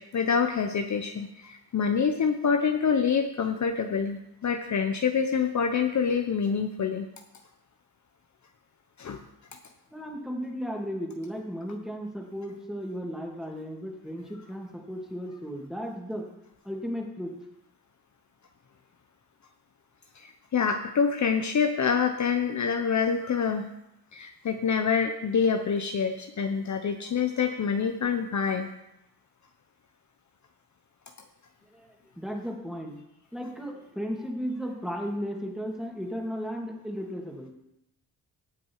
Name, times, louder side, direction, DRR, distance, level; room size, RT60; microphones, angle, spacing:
voice 1, 0.0-7.1 9.0-9.2 20.1-23.7 24.1-28.7, left 6 dB, 45° left, 5 dB, 0.9 m, -26 dB
voice 2, 9.9-16.2 16.6-17.3 31.7-32.9 33.3-37.5, equal, ahead, 0 dB, 2.6 m, -35 dB
17.0 x 6.1 x 4.8 m, 0.84 s
cardioid pair, 85°, 39 cm